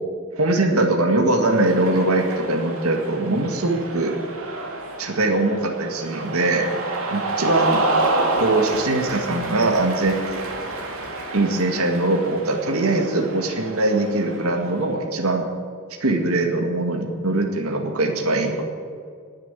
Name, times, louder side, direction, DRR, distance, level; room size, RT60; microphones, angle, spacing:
voice 1, 0.4-4.2 5.0-6.7 7.1-7.8 8.4-10.4 11.3-15.5 16.0-18.6, right 2 dB, 90° right, 3 dB, 2.0 m, -22 dB
Cheering, 1.4-14.9, right 2 dB, 70° right, 2.5 m, -28 dB
19.5 x 7.6 x 8.3 m, 2.1 s
head